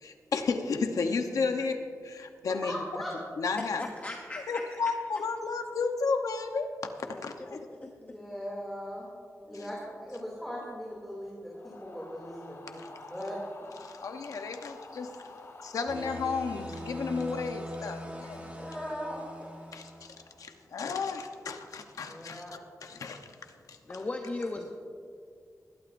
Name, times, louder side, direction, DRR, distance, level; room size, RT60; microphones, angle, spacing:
voice 1, 0.0-2.8 3.4-3.8 4.5-6.7 7.1-7.7 9.5-9.7 12.8-12.9 13.8-15.1 15.6-18.5 19.7-22.4 22.8-23.3 23.7-24.0, left 4 dB, 85° left, 6 dB, 1.0 m, -33 dB
voice 2, 2.6-3.1 8.0-9.1 9.5-13.4 18.1-18.2 18.5-19.5 22.1-22.5, equal, 5° left, -5 dB, 2.7 m, -39 dB
voice 3, 3.8-4.9 5.5-5.6 7.4-8.4 9.5-9.8 23.8-24.7, left 2 dB, 30° left, 2 dB, 0.9 m, -39 dB
sound 1, 11.5-20.6, left 2 dB, 50° left, 1.3 m, -50 dB
sound 2, 15.9-20.3, equal, 25° right, 1.4 m, -42 dB
20.5 x 12.0 x 2.7 m, 2.2 s
wide cardioid pair, 110°, 6 cm